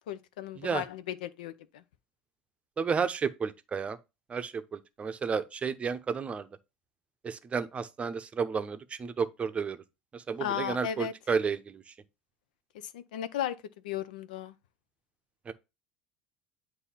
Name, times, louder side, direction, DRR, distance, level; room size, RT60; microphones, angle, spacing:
voice 1, 0.1-1.8 10.4-11.1 12.7-13.6 13.8-14.5, left 10 dB, 85° left, 0.5 m, -35 dB
voice 2, 2.8-4.0 4.3-6.5 7.2-9.8 10.1-11.8 15.5-15.6, right 6 dB, 30° right, 0.7 m, -32 dB
8.2 x 2.7 x 5.6 m
hypercardioid pair, 85°, 4 cm